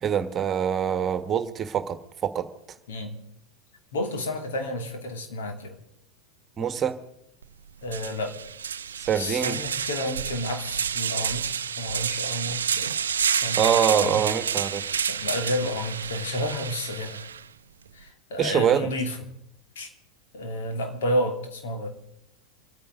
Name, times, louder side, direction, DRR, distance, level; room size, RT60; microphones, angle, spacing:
voice 1, 0.0-2.5 6.6-7.0 9.0-9.6 13.5-14.9 18.4-18.9, right 8 dB, 30° right, 10 dB, 1.5 m, -24 dB
voice 2, 2.9-3.2 3.9-5.8 7.8-8.3 9.2-11.5 11.8-12.9 13.4-14.2 15.1-17.3 17.9-19.2 19.7-19.9 20.3-21.9, left 1 dB, 70° left, 4 dB, 2.9 m, -31 dB
sound 1, 7.4-7.5 7.9-17.4, right 7 dB, 80° right, 0.5 m, -29 dB
26.5 x 9.3 x 5.2 m, 0.80 s
hypercardioid pair, 90°, 0 cm